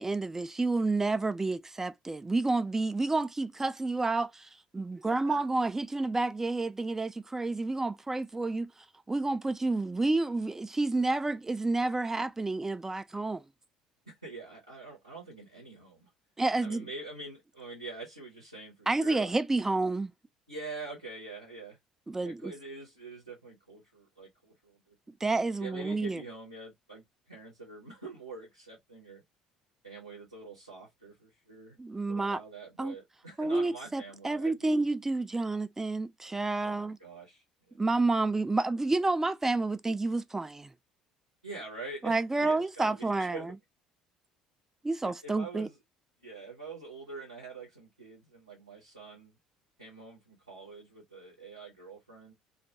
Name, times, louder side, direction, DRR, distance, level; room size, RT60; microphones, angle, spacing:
voice 1, 0.0-8.7 9.1-13.4 16.4-16.9 18.9-20.1 22.1-22.5 25.2-26.2 31.8-32.4 32.8-33.0 33.4-37.0 37.8-40.7 42.0-43.5 44.8-45.7, right 3 dB, 15° right, 0.3 m, -29 dB
voice 2, 5.1-5.4 14.1-16.1 16.6-19.4 20.5-21.8 22.2-25.0 25.6-29.2 29.8-31.8 32.0-34.8 36.6-37.8 41.4-43.6 45.0-45.8 46.2-49.4 49.8-52.3, right 3 dB, 90° right, 0.8 m, -45 dB
2.3 x 2.2 x 2.7 m
figure-of-eight pair, 55°, 3 cm